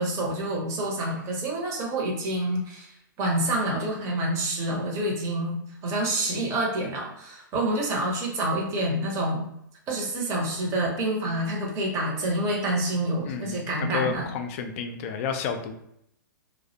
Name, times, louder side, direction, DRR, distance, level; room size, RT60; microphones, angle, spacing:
voice 1, 0.0-9.4 9.9-14.2, right 1 dB, 25° right, -2 dB, 0.7 m, -27 dB
voice 2, 13.3-15.7, left 6 dB, 40° left, 6 dB, 0.4 m, -31 dB
2.4 x 2.1 x 2.7 m, 0.77 s
hypercardioid pair, 120°, 11 cm